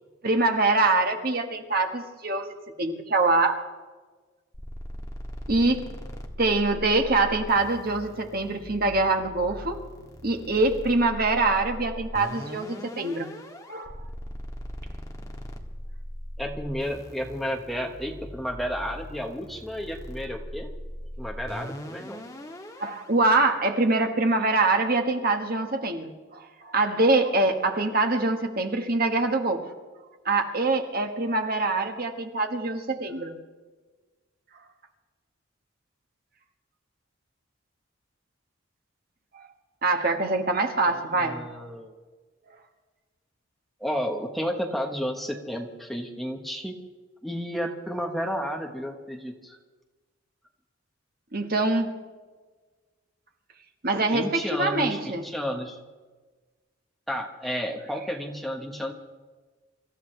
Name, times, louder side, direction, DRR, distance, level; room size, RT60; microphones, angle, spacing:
voice 1, 0.2-3.6 5.5-5.9 6.4-9.8 10.2-13.3 13.7-13.9 22.8-29.6 30.2-33.3 39.3-39.4 39.8-41.4 51.3-51.9 53.8-55.3, right 2 dB, 45° right, 4 dB, 1.6 m, -24 dB
sound 1, 4.5-23.1, equal, 15° left, 1.6 m, -40 dB
voice 2, 16.4-20.7 21.2-22.2 40.9-41.9 43.8-46.8 47.2-49.6 54.1-55.8 57.1-58.9, equal, ahead, 2 dB, 1.2 m, -32 dB
26.0 x 14.5 x 3.4 m, 1.3 s
head